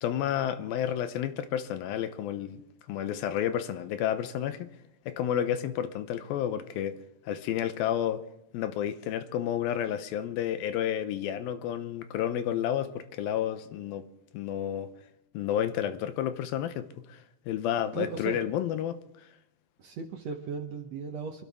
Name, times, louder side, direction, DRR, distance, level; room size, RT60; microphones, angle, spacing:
voice 1, 0.0-2.6 2.9-4.7 5.1-7.0 7.3-8.2 8.5-14.0 14.3-14.9 15.3-19.3, left 10 dB, 80° left, 11 dB, 2.5 m, -31 dB
voice 2, 17.9-18.4 19.8-21.4, right 6 dB, 75° right, 4 dB, 1.6 m, -36 dB
26.0 x 12.5 x 3.5 m, 0.80 s
omnidirectional pair, 4.4 m